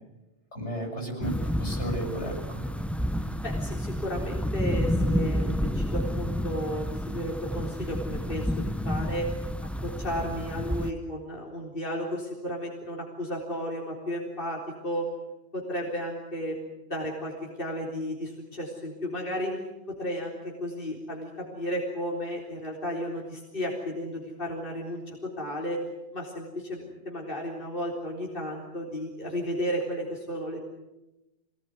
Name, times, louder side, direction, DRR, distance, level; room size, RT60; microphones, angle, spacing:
voice 1, 0.5-2.6, right 1 dB, 85° left, 1 dB, 8.4 m, -34 dB
sound 1, 1.2-10.9, equal, ahead, 0.8 m, -30 dB
voice 2, 3.4-9.3 9.8-15.1 15.5-16.6 16.9-19.6 19.9-25.8 26.1-30.6, equal, 50° left, -2 dB, 4.2 m, -33 dB
26.0 x 19.5 x 9.5 m, 1.0 s
omnidirectional pair, 1.1 m